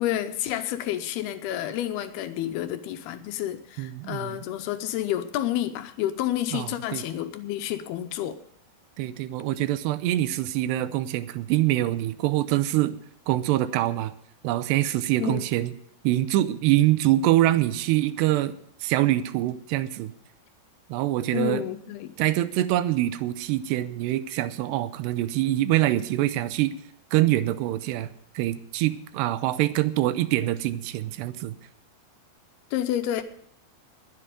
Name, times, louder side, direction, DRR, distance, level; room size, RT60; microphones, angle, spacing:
voice 1, 0.0-8.4 15.2-15.4 21.3-22.1 32.7-33.2, left 12 dB, 75° left, 9 dB, 2.7 m, -29 dB
voice 2, 3.8-4.4 6.5-7.0 9.0-13.0 13.3-14.1 14.4-15.7 16.0-18.5 18.8-20.1 20.9-21.6 22.2-26.7 27.1-31.6, right 14 dB, 90° right, 13 dB, 2.9 m, -24 dB
21.0 x 7.9 x 5.0 m, 0.68 s
omnidirectional pair, 4.8 m